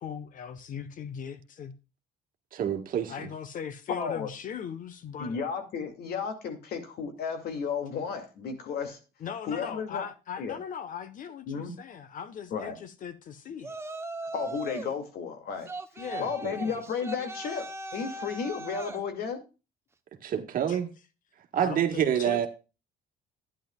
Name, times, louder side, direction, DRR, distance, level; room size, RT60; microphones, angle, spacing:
voice 1, 0.0-1.7 3.1-5.4 9.2-13.8 16.0-16.7 20.7-20.8 21.6-22.5, left 7 dB, 50° left, 1.2 m, -39 dB
voice 2, 2.5-3.1 16.4-16.6 20.2-20.9 21.5-22.5, right 9 dB, 55° right, 1.6 m, -27 dB
voice 3, 3.9-4.3 5.2-9.0 9.4-10.1 10.4-10.6 11.5-11.7 12.5-12.8 14.3-15.7 16.2-19.4, left 6 dB, 70° left, 2.5 m, -33 dB
Yell, 13.6-15.0 15.7-19.0, right 2 dB, 15° right, 0.9 m, -39 dB
12.0 x 10.0 x 2.4 m
cardioid pair, 110°, 17 cm